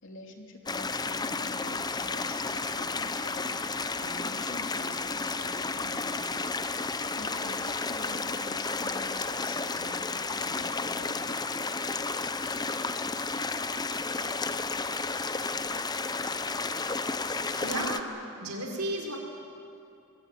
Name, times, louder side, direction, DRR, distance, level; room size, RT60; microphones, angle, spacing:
voice 1, 0.0-3.6 3.8-6.3 6.6-11.5, left 1 dB, 60° left, 3 dB, 3.0 m, -47 dB
sound 1, 0.7-18.0, left 3 dB, 20° left, 0.8 m, -32 dB
voice 2, 17.5-19.2, right 1 dB, 90° right, 2 dB, 4.8 m, -34 dB
25.0 x 21.5 x 9.3 m, 2.6 s
head